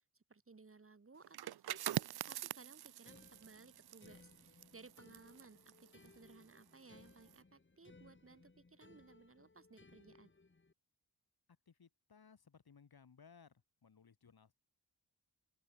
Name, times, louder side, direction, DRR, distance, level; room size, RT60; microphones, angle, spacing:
voice 1, 0.1-10.3, right 4 dB, 35° right, 1.8 m, -60 dB
sound 1, 1.2-6.7 7.1-7.4, right 12 dB, 70° right, 0.6 m, -44 dB
sound 2, 3.0-10.7, left 3 dB, 30° left, 2.6 m, -64 dB
voice 2, 11.7-14.5, left 6 dB, 65° left, 5.4 m, -63 dB
open air
cardioid pair, 75°, 40 cm